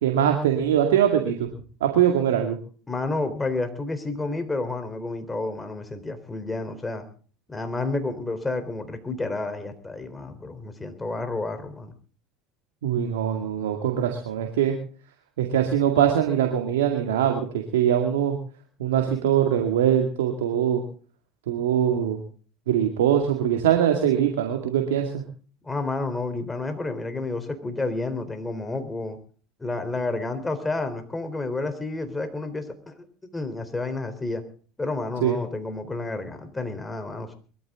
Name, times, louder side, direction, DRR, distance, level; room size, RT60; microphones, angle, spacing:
voice 1, 0.0-1.5 1.8-2.6 12.8-14.8 15.4-18.4 18.8-20.8 21.5-22.2 22.7-25.2 35.2-35.4, right 9 dB, 85° right, 3 dB, 2.2 m, -22 dB
voice 2, 2.9-7.1 7.5-11.9 25.6-29.2 29.6-32.9 33.3-34.4 34.8-37.4, left 3 dB, 15° left, 9 dB, 3.7 m, -30 dB
22.5 x 13.5 x 3.7 m, 0.40 s
hypercardioid pair, 80°, 0 cm